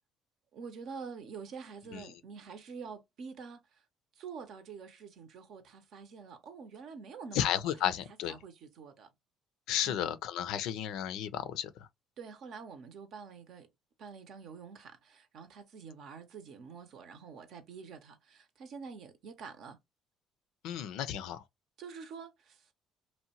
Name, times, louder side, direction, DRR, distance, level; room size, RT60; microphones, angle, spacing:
voice 1, 0.5-3.8 4.2-7.5 7.8-7.9 8.3-9.1 9.8-10.1 12.2-13.7 14.0-19.8 21.8-22.7, right 5 dB, 70° right, 0.7 m, -47 dB
voice 2, 7.3-8.3 9.7-11.9 20.6-21.4, left 10 dB, 80° left, 0.4 m, -33 dB
2.8 x 2.1 x 2.8 m
supercardioid pair, 75°, 0 cm